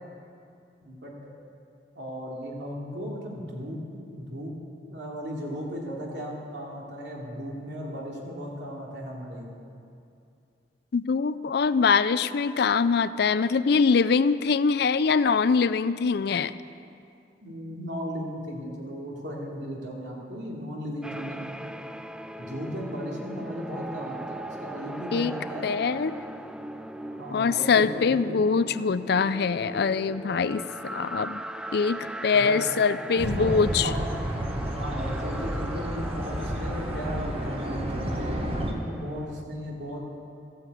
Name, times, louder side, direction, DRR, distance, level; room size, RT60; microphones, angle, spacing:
voice 1, 0.8-1.1 1.9-3.8 4.1-4.6 4.9-9.5 17.4-21.4 22.4-25.7 27.1-28.4 32.3-32.6 33.4-33.5 33.8-34.0 34.7-40.2, equal, 80° right, -3 dB, 2.9 m, -36 dB
voice 2, 10.9-16.5 25.1-25.3 25.6-26.2 27.3-31.4 31.7-33.9, left 5 dB, 65° left, 14 dB, 0.4 m, -23 dB
sound 1, 21.0-39.4, right 1 dB, 5° right, 0.3 m, -39 dB
sound 2, 33.2-38.7, right 1 dB, 35° right, 1.5 m, -31 dB
14.0 x 9.3 x 8.3 m, 2.5 s
head